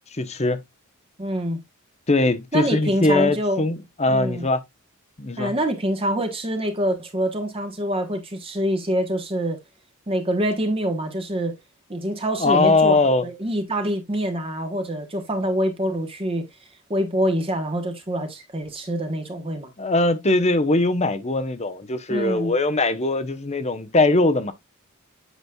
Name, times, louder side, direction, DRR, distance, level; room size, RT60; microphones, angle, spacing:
voice 1, 0.2-0.6 2.1-4.6 5.2-5.5 12.4-13.2 19.8-24.5, left 2 dB, 30° left, 0.9 m, -21 dB
voice 2, 1.2-1.6 2.5-3.6 4.1-4.4 5.4-9.6 10.1-11.6 11.9-16.5 16.9-19.7 22.1-22.5, equal, 25° right, 1.2 m, -25 dB
8.1 x 6.1 x 2.3 m
head